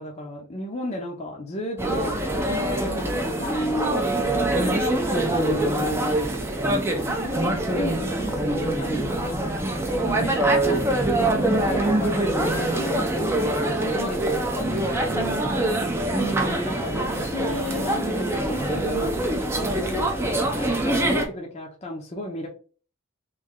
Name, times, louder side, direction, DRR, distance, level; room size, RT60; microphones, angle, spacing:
voice 1, 0.0-2.2 2.5-6.0 7.7-9.5 10.7-10.8 11.3-14.8 16.1-22.5, left 1 dB, 30° left, 0.6 m, -34 dB
sound 1, 1.8-21.3, right 1 dB, 10° right, 0.5 m, -24 dB
voice 2, 7.1-7.8 10.0-11.6 15.1-16.0, right 2 dB, 75° left, 1.4 m, -40 dB
3.1 x 2.6 x 3.6 m
head